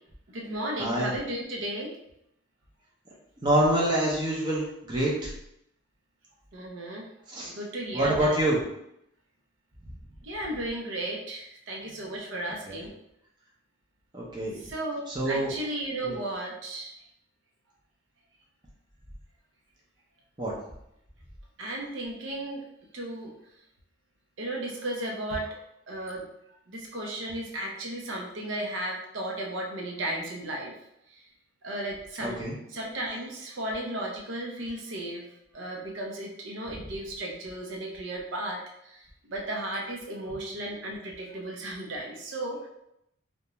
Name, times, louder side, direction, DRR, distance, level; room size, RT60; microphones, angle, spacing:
voice 1, 0.3-1.9 6.5-7.1 7.5-8.4 10.2-12.9 14.5-17.0 21.6-22.6 22.9-23.3 24.4-25.6 25.9-26.3 26.7-30.7 31.1-31.2 31.6-32.4 32.7-35.3 35.5-42.7, right 1 dB, 65° right, -1 dB, 0.6 m, -34 dB
voice 2, 0.8-1.1 3.4-5.3 7.3-7.5 7.9-8.6 12.7-12.8 14.1-14.6 15.1-15.5 16.0-16.1 20.4-20.5 32.2-32.5, right 1 dB, 20° right, -5 dB, 0.6 m, -26 dB
2.4 x 2.2 x 2.9 m, 0.80 s
head